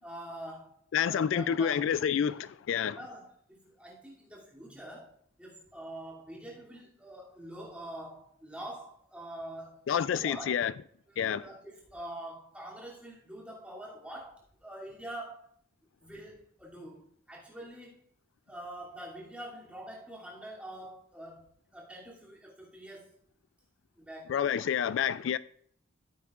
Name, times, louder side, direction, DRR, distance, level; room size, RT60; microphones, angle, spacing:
voice 1, 0.0-0.8 1.1-1.9 3.0-10.6 11.1-15.5 16.0-18.1 18.5-21.4 21.7-23.1 24.0-24.4, right 1 dB, 5° right, 2.7 m, -45 dB
voice 2, 0.9-3.0 9.9-10.7 11.2-11.4 24.3-25.4, left 8 dB, 65° left, 0.3 m, -28 dB
14.5 x 8.1 x 2.4 m
head